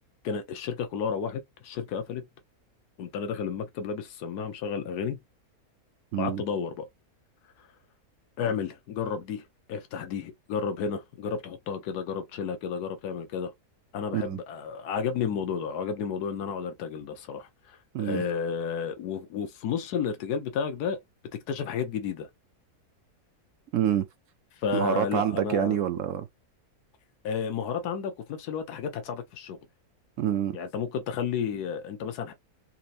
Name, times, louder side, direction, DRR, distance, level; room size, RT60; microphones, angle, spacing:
voice 1, 0.2-2.2 3.0-5.2 6.2-6.9 8.4-9.4 9.7-13.5 13.9-21.0 21.3-22.3 24.6-25.8 27.2-29.6 30.5-32.3, left 6 dB, 85° left, 1.3 m, -32 dB
voice 2, 6.1-6.4 14.1-14.4 17.9-18.2 23.7-24.1 24.7-26.3 30.2-30.6, right 10 dB, 70° right, 0.8 m, -27 dB
4.3 x 2.8 x 2.5 m
omnidirectional pair, 1.6 m